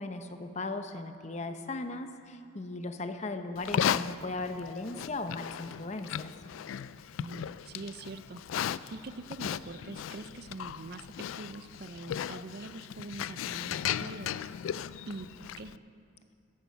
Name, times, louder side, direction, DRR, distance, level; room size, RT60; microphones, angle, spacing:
voice 1, 0.0-6.3, left 2 dB, 35° left, 8 dB, 0.6 m, -37 dB
Livestock farm animals working animals, 3.6-15.8, left 9 dB, 85° left, 0.3 m, -36 dB
voice 2, 7.2-8.4 8.9-14.5 15.1-15.7, right 3 dB, 50° right, 11 dB, 0.5 m, -44 dB
14.0 x 10.5 x 5.7 m, 2.4 s
head